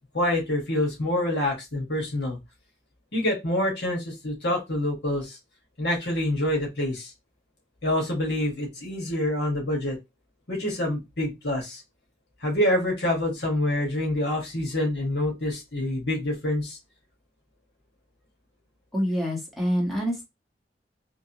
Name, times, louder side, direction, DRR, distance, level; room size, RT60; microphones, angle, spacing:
voice 1, 0.1-2.4 3.1-5.4 5.8-7.1 7.8-10.0 10.5-11.8 12.4-16.8, left 1 dB, 75° left, 0 dB, 1.7 m, -26 dB
voice 2, 18.9-20.2, equal, ahead, -3 dB, 1.4 m, -26 dB
3.8 x 2.7 x 2.9 m, 0.21 s
head